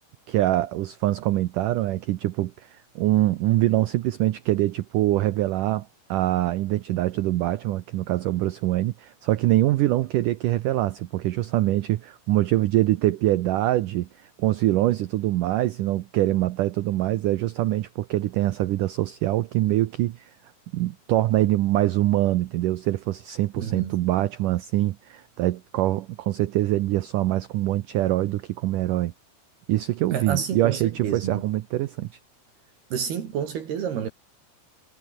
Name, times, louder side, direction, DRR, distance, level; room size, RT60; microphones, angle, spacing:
voice 1, 0.3-20.3 20.7-29.1 29.7-32.1, right 15 dB, 85° right, 1.8 m, -24 dB
voice 2, 23.5-23.9 30.1-31.4 32.9-34.1, right 8 dB, 70° right, 4.6 m, -29 dB
omnidirectional pair, 4.8 m